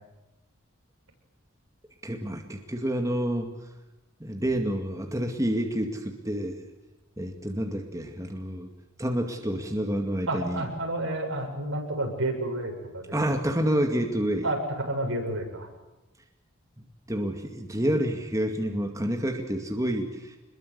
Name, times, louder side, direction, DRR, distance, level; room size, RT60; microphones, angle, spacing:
voice 1, 2.0-3.5 4.2-6.6 7.2-8.7 9.0-10.6 13.1-14.5 17.1-20.4, right 1 dB, 15° right, 3 dB, 2.3 m, -28 dB
voice 2, 10.3-13.1 14.4-14.6 14.9-15.7, right 1 dB, 75° right, 1 dB, 7.8 m, -30 dB
27.0 x 22.0 x 8.3 m, 1.0 s
head